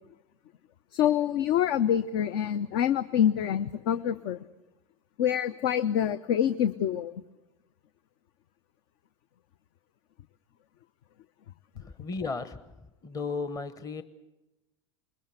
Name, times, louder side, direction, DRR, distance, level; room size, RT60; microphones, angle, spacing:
voice 1, 0.9-4.4 5.2-7.1, left 9 dB, 50° left, 14 dB, 0.7 m, -26 dB
voice 2, 11.8-12.6 13.0-14.0, left 4 dB, 20° left, 12 dB, 1.1 m, -34 dB
21.5 x 20.5 x 8.0 m, 1.0 s
figure-of-eight pair, 80°, 17 cm